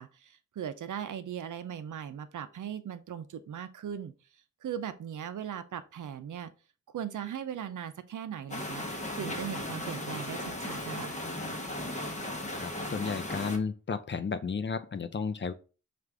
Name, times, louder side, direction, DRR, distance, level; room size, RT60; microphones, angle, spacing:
voice 1, 0.0-4.1 4.6-6.5 6.9-8.8 9.1-11.1, right 9 dB, 80° right, 0.5 m, -38 dB
sound 1, 8.5-13.6, left 1 dB, 25° left, 0.8 m, -36 dB
voice 2, 12.5-15.5, left 5 dB, 40° left, 0.4 m, -33 dB
4.7 x 2.5 x 3.3 m
wide cardioid pair, 90°, 31 cm